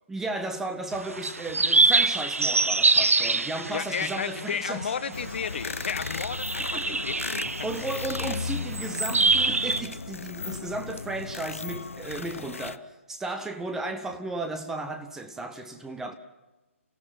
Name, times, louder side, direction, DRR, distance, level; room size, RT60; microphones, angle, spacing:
voice 1, 0.1-4.9 6.7-7.0 7.6-16.1, right 2 dB, 5° right, 0.9 m, -34 dB
sound 1, 0.9-9.8, right 3 dB, 75° right, 1.0 m, -26 dB
voice 2, 3.7-7.3, left 7 dB, 50° left, 1.1 m, -33 dB
sound 2, 5.1-12.8, left 4 dB, 70° left, 0.8 m, -35 dB
29.0 x 16.5 x 5.5 m
figure-of-eight pair, 140°, 8 cm